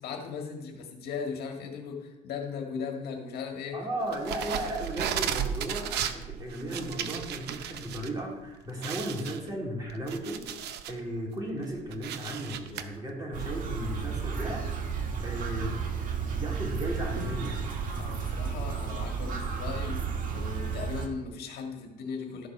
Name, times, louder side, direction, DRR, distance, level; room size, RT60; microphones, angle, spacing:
voice 1, 0.0-3.9 4.3-4.5 18.0-20.0 20.3-22.5, left 6 dB, 70° left, 2 dB, 1.8 m, -37 dB
voice 2, 3.7-14.7 15.2-15.9 16.3-17.6, right 1 dB, 25° right, -2 dB, 3.0 m, -35 dB
sound 1, 4.1-8.1 8.4-8.5 8.8-11.0 11.5-12.8, right 9 dB, 75° right, 0.8 m, -34 dB
sound 2, 13.3-21.1, right 6 dB, 55° right, 1.8 m, -32 dB
12.5 x 4.7 x 6.0 m, 1.0 s
cardioid pair, 110°, 17 cm